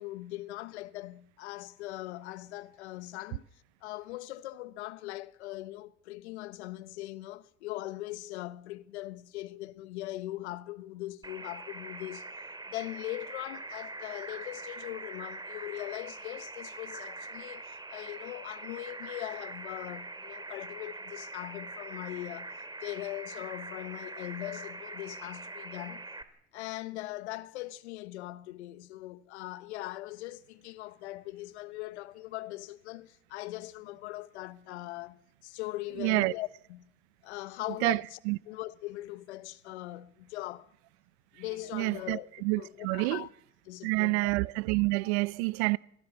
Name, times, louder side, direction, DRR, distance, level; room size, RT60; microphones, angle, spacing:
voice 1, 0.0-12.3 12.7-26.1 26.5-36.9 37.2-38.2 38.5-40.7 41.3-42.3 42.6-43.3 43.6-44.3, left 17 dB, 85° left, 1.2 m, -40 dB
sound 1, 11.2-26.2, right 2 dB, 15° right, 2.7 m, -43 dB
voice 2, 36.0-36.3 37.8-38.0 38.3-38.4 41.7-43.2 43.8-45.8, right 25 dB, 75° right, 0.8 m, -28 dB
25.0 x 17.0 x 7.1 m
supercardioid pair, 85°, 33 cm